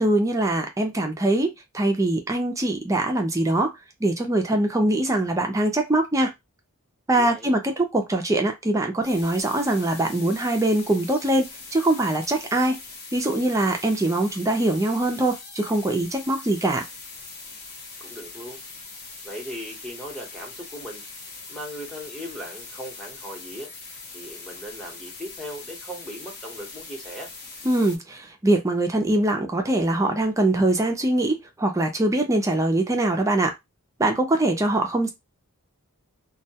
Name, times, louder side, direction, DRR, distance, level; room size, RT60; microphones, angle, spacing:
voice 1, 0.0-3.7 4.0-6.3 7.1-12.8 13.1-16.8 27.6-33.5 34.0-35.1, right 1 dB, 15° right, 0.4 m, -23 dB
voice 2, 7.1-7.5 18.0-18.6 19.2-21.0 21.5-23.7 24.1-27.3, equal, ahead, 0.8 m, -38 dB
sound 1, 9.0-28.0, left 4 dB, 45° left, 0.7 m, -41 dB
2.2 x 2.1 x 2.7 m
head